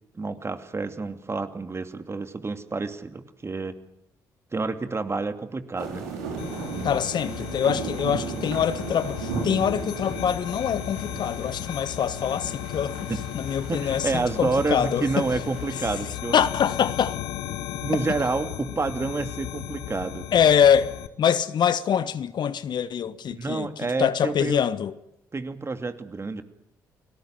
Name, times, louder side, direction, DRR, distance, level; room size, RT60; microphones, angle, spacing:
voice 1, 0.1-3.8 4.5-6.1 13.1-13.2 13.7-16.3 17.5-20.3 23.3-24.6 25.3-26.4, right 3 dB, 30° right, 2.6 m, -29 dB
sound 1, 5.8-16.2, right 4 dB, 80° right, 5.4 m, -36 dB
sound 2, 6.4-21.1, left 13 dB, 75° left, 1.3 m, -35 dB
voice 2, 6.8-13.0 13.3-15.2 16.3-17.2 20.3-24.9, left 8 dB, 55° left, 1.2 m, -24 dB
29.5 x 19.0 x 7.8 m
hypercardioid pair, 45°, 9 cm